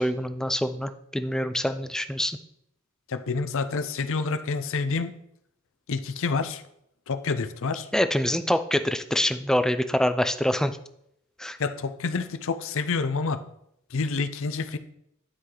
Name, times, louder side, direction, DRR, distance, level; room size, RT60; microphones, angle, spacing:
voice 1, 0.0-2.4 7.9-10.8 11.4-11.6, equal, 5° left, 10 dB, 0.4 m, -25 dB
voice 2, 3.1-5.1 5.9-6.6 7.1-7.9 11.6-13.4 13.9-14.8, left 4 dB, 65° left, 11 dB, 0.6 m, -28 dB
11.0 x 4.8 x 3.8 m, 0.75 s
head